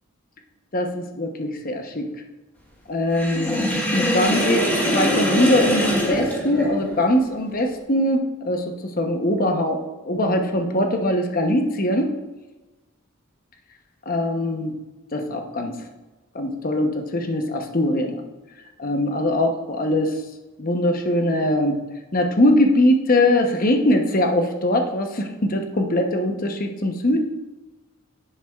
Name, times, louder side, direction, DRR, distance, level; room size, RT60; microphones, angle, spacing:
voice 1, 0.7-2.1 2.9-8.6 9.0-12.1 14.1-14.7 15.1-15.8 16.3-18.2 18.8-20.1 20.6-21.8 22.1-27.2, left 1 dB, 40° left, 4 dB, 0.9 m, -22 dB
Sink (filling or washing), 3.1-7.1, equal, 10° left, 1.4 m, -23 dB
10.5 x 7.6 x 2.4 m, 1.1 s
head